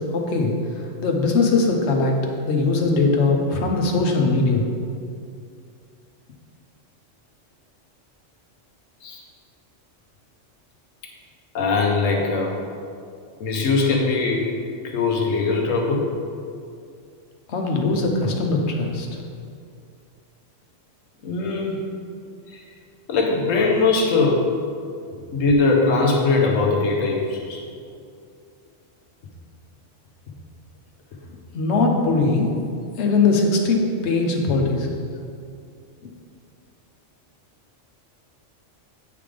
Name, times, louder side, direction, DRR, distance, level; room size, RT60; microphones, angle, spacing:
voice 1, 0.1-0.5 1.0-2.2 2.5-4.7 17.5-19.1 31.5-32.6 33.0-34.9, left 3 dB, 65° left, 2 dB, 1.1 m, -20 dB
voice 2, 11.5-12.6 13.4-14.5 14.8-16.1 21.2-21.8 22.5-22.7 23.1-24.5 25.3-27.6, left 3 dB, 85° left, 0 dB, 1.2 m, -21 dB
8.5 x 3.5 x 5.0 m, 2.4 s
omnidirectional pair, 1.3 m